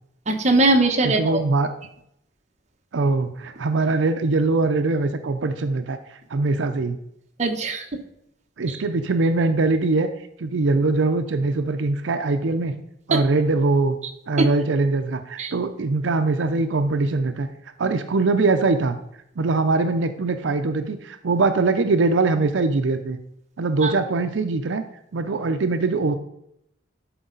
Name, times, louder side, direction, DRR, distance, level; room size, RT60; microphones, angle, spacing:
voice 1, 0.3-1.4 7.4-8.0 8.7-8.8 13.1-13.2 14.4-14.5 15.4-15.5 23.8-23.9, right 2 dB, 40° right, 4 dB, 1.0 m, -21 dB
voice 2, 1.0-1.7 2.9-6.0 6.3-7.0 8.6-10.1 10.4-12.7 13.1-14.0 14.3-17.5 17.8-19.0 19.4-23.2 23.6-24.8 25.1-26.2, right 3 dB, 80° right, 8 dB, 0.5 m, -22 dB
11.0 x 4.7 x 3.9 m, 0.77 s
head